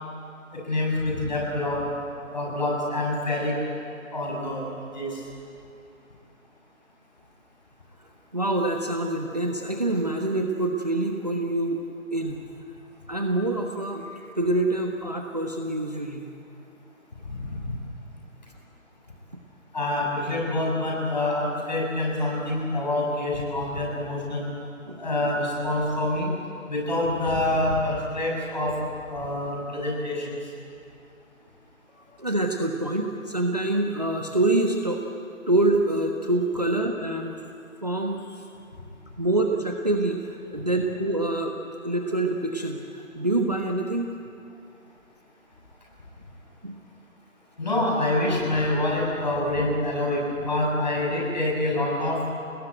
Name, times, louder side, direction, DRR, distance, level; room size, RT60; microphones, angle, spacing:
voice 1, 0.5-1.8 2.3-3.5 4.1-4.6 4.9-5.2 17.3-17.6 19.7-24.4 25.0-26.3 26.7-28.7 29.1-30.4 47.6-52.3, left 1 dB, 30° left, -3 dB, 6.6 m, -26 dB
voice 2, 8.3-11.8 12.1-12.4 13.1-16.3 24.8-25.1 32.0-35.0 35.5-37.3 37.8-38.4 39.2-41.5 41.8-44.2 46.6-46.8, right 2 dB, 30° right, 3 dB, 1.2 m, -26 dB
29.5 x 19.5 x 9.1 m, 2.7 s
figure-of-eight pair, 180°, 42 cm